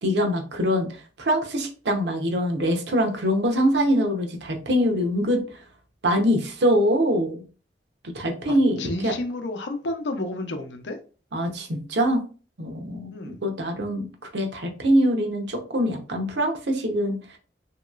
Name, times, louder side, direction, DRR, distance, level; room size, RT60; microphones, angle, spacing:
voice 1, 0.0-0.9 1.2-5.4 6.0-7.4 8.1-9.1 11.3-12.2 12.6-17.1, equal, 80° right, 0.7 m, -23 dB
voice 2, 8.5-11.0 13.1-13.3, left 2 dB, 90° left, 0.6 m, -31 dB
3.0 x 2.9 x 2.3 m
head